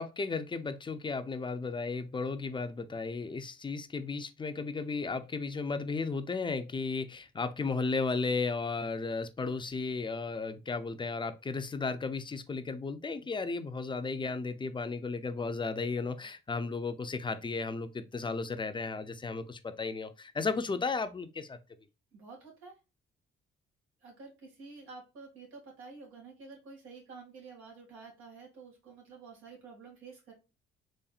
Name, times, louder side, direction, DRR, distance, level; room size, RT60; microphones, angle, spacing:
voice 1, 0.0-21.6, left 4 dB, 25° left, 0.5 m, -34 dB
voice 2, 22.1-22.7 24.0-30.3, right 4 dB, 85° right, 2.2 m, -50 dB
4.2 x 3.2 x 2.3 m
cardioid pair, 90°, 20 cm